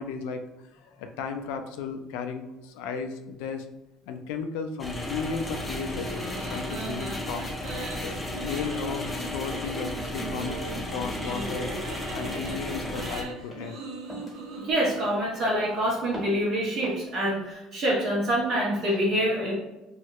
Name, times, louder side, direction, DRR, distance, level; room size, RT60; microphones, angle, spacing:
voice 1, 0.0-3.7 4.1-7.6 8.0-11.7 12.1-13.8, left 5 dB, 90° left, 7 dB, 0.3 m, -35 dB
sound 1, 4.8-13.2, left 1 dB, 15° left, 0.5 m, -34 dB
sound 2, 5.9-14.7, right 3 dB, 80° right, 0.6 m, -39 dB
sound 3, 12.8-13.1 13.5-13.8 14.1-14.4 14.9-15.2 15.5-15.8 16.1-16.5 16.8-17.1, equal, 15° right, 1.2 m, -41 dB
voice 2, 14.6-19.5, equal, 55° right, -5 dB, 1.0 m, -26 dB
2.9 x 2.3 x 3.0 m, 0.99 s
cardioid pair, 110°, 0 cm